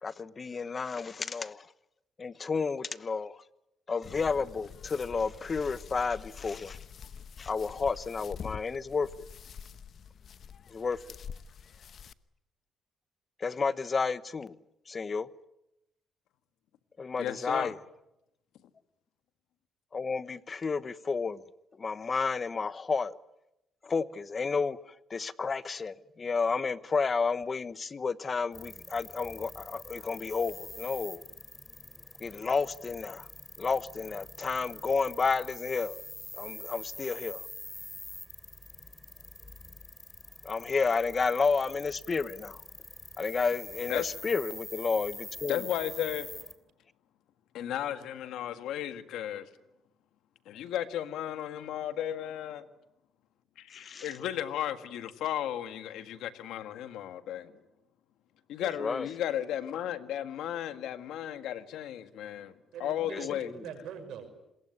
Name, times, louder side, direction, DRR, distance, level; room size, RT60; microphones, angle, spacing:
voice 1, 0.0-1.7 2.2-3.4 3.9-6.8 7.4-9.1 10.7-11.0 13.4-14.6 14.9-15.3 17.0-17.8 19.9-21.4 21.8-23.2 23.8-24.8 25.1-31.2 32.2-33.3 33.6-36.0 36.3-37.4 40.4-42.6 43.2-45.7 53.7-54.1 58.6-59.1 63.1-63.6, left 4 dB, 35° left, 1.0 m, -31 dB
sound 1, 4.0-12.1, left 7 dB, 60° left, 1.0 m, -46 dB
voice 2, 17.2-17.7 43.9-44.1 45.5-46.3 47.5-49.5 50.4-52.6 53.6-57.5 58.5-62.5 62.8-63.5, left 11 dB, 85° left, 1.7 m, -34 dB
sound 2, 28.5-46.6, left 2 dB, 15° left, 3.0 m, -45 dB
voice 3, 62.7-64.3, right 7 dB, 80° right, 5.8 m, -43 dB
27.0 x 21.5 x 9.6 m
cardioid pair, 90°, 0 cm